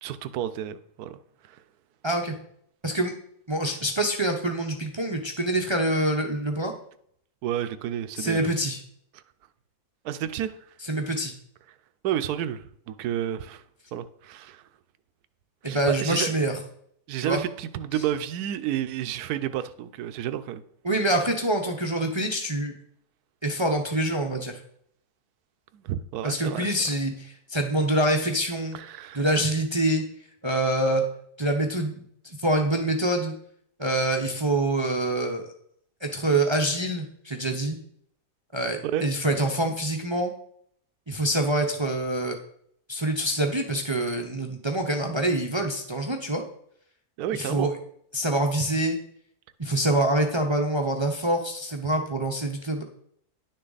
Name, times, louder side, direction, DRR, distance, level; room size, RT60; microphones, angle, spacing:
voice 1, 0.0-1.2 1.5-1.6 7.4-8.5 9.1-9.2 10.0-10.6 12.0-13.6 13.9-14.6 15.6-16.3 17.1-20.6 25.7-26.8 28.7-29.3 38.8-39.0 47.2-47.7, right 10 dB, 70° right, 1.1 m, -31 dB
voice 2, 2.0-2.3 2.8-3.1 3.5-6.7 8.2-8.8 10.8-11.3 15.6-16.6 17.2-17.4 20.8-22.7 23.4-24.6 26.2-28.8 29.1-30.0 30.4-31.0 31.4-32.0 32.4-33.3 33.8-35.5 36.0-37.8 38.5-40.3 41.1-42.4 42.9-46.4 47.3-47.7 48.1-49.0 49.6-52.8, right 1 dB, 30° right, 0.5 m, -25 dB
10.5 x 6.5 x 4.0 m
omnidirectional pair, 1.8 m